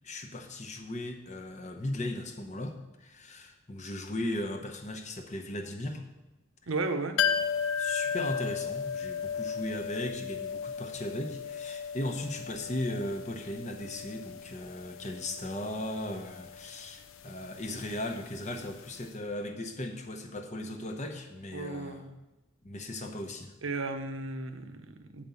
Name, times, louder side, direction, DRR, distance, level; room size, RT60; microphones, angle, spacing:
voice 1, 0.0-6.0 7.3-22.0 22.6-23.5, left 1 dB, 35° left, 4 dB, 0.9 m, -37 dB
voice 2, 6.7-7.2 21.5-22.2 23.6-25.2, right 3 dB, 70° right, 7 dB, 0.8 m, -34 dB
sound 1, 7.2-18.8 19.0-19.1, left 7 dB, 75° left, 0.5 m, -35 dB
9.0 x 5.2 x 6.9 m, 1.0 s
head